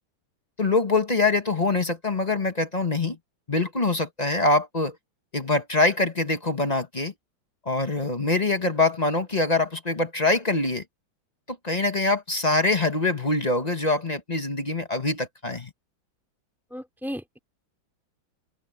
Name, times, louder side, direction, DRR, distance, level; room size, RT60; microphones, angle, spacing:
voice 1, 0.6-3.2 3.5-4.9 5.3-7.1 7.6-10.8 11.5-15.7, left 3 dB, 25° left, 1.2 m, -24 dB
voice 2, 16.7-17.4, equal, ahead, 4.3 m, -35 dB
open air
omnidirectional pair, 2.1 m